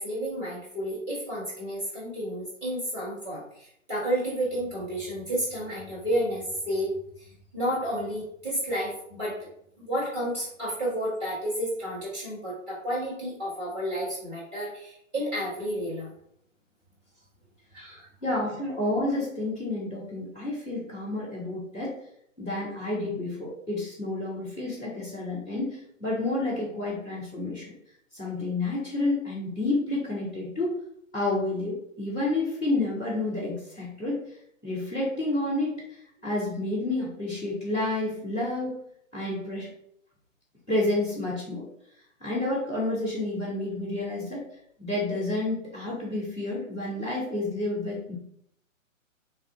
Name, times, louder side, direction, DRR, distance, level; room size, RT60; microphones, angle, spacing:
voice 1, 0.0-9.4 9.8-16.1 17.7-18.1, equal, 15° right, -8 dB, 1.2 m, -31 dB
voice 2, 18.2-22.0 22.4-27.7 28.1-30.7 31.1-34.2 34.6-38.8 39.1-39.7 40.7-41.7 42.2-44.4 44.8-48.1, left 2 dB, 5° left, -15 dB, 0.4 m, -30 dB
3.1 x 2.6 x 3.8 m, 0.70 s
figure-of-eight pair, 125°, 40 cm